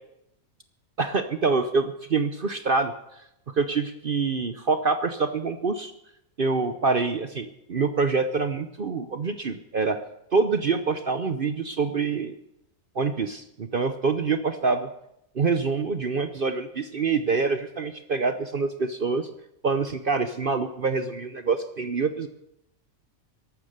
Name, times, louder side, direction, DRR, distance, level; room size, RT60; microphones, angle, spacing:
voice 1, 1.0-2.9 3.5-5.9 6.4-10.0 10.3-12.4 12.9-14.9 15.3-19.3 19.6-22.3, right 4 dB, 45° right, 9 dB, 0.8 m, -26 dB
14.0 x 12.0 x 6.7 m, 0.81 s
omnidirectional pair, 1.5 m